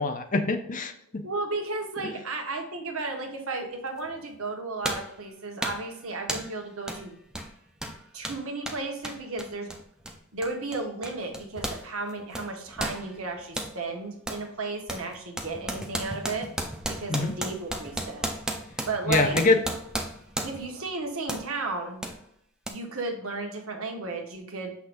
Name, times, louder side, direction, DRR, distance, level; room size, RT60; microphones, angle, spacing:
voice 1, 0.0-1.2 2.0-2.1 17.1-17.3 19.1-19.6, left 3 dB, 35° left, 6 dB, 0.7 m, -24 dB
voice 2, 1.2-7.2 8.1-9.7 10.3-16.5 16.9-18.3 18.9-19.4 20.4-22.0 22.7-24.8, right 3 dB, 70° right, 2 dB, 1.4 m, -34 dB
sound 1, 4.0-4.1 4.8-5.2 5.6-5.9 6.3-6.6 6.9-7.0 7.3-11.8 12.1-13.7 14.3-14.5 14.9-20.7 21.3-21.5 22.0-22.2 22.7-22.8, right 1 dB, 5° right, 0.6 m, -34 dB
6.4 x 5.8 x 2.6 m, 0.75 s
head